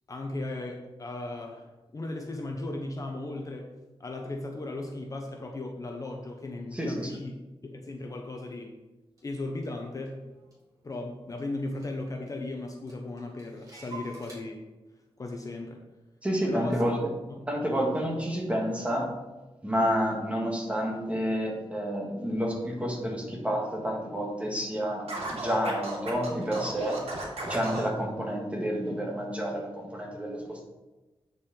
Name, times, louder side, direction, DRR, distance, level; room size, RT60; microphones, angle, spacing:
voice 1, 0.1-3.7 4.0-7.3 7.6-8.7 9.2-10.2 10.8-14.6 15.2-15.8 16.5-16.8 17.7-17.9, left 2 dB, 35° left, 2 dB, 0.8 m, -36 dB
voice 2, 6.7-7.1 16.2-17.1 17.5-19.1 19.6-27.0 27.5-30.6, equal, 10° right, -1 dB, 1.7 m, -29 dB
Clock, 9.2-9.3 9.6-11.1 11.4-11.5 11.7-12.4 12.7-14.4, right 2 dB, 35° right, 3.0 m, -48 dB
Scratching (performance technique), 25.1-27.9, right 2 dB, 80° right, 2.6 m, -35 dB
8.4 x 7.2 x 3.9 m, 1.1 s
wide cardioid pair, 180°, 10 cm